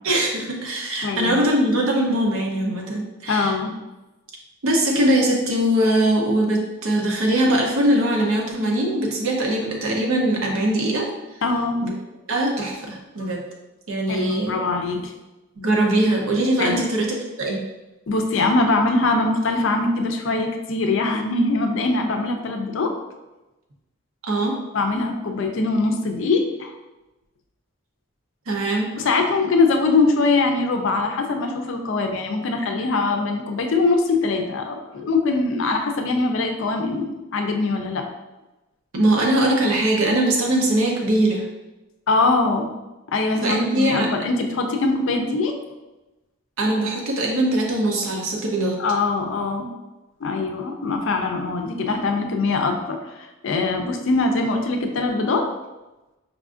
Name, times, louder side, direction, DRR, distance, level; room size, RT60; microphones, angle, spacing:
voice 1, 0.0-3.5 4.6-11.1 11.8-11.9 12.3-13.4 13.9-14.6 15.6-17.6 24.2-24.6 28.5-28.9 38.9-41.5 43.4-44.2 46.6-48.8, right 1 dB, 80° right, 0 dB, 0.7 m, -21 dB
voice 2, 1.0-1.3 3.3-3.7 11.4-11.8 14.1-15.1 16.6-16.8 18.1-22.9 24.7-26.8 29.0-38.1 42.1-42.7 43.1-45.5 48.8-49.7 50.2-55.5, left 3 dB, 60° left, 4 dB, 0.4 m, -22 dB
4.9 x 2.5 x 2.4 m, 1.0 s
head